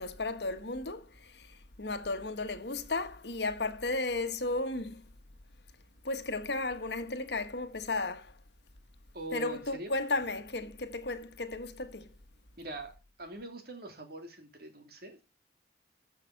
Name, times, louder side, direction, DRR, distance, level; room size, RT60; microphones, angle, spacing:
voice 1, 0.0-1.5 1.8-5.0 6.0-8.3 9.3-12.1, left 2 dB, 70° left, 1.5 m, -34 dB
voice 2, 9.1-9.9 12.6-12.9 13.2-15.2, right 1 dB, 60° right, 2.7 m, -43 dB
14.0 x 5.8 x 5.8 m
head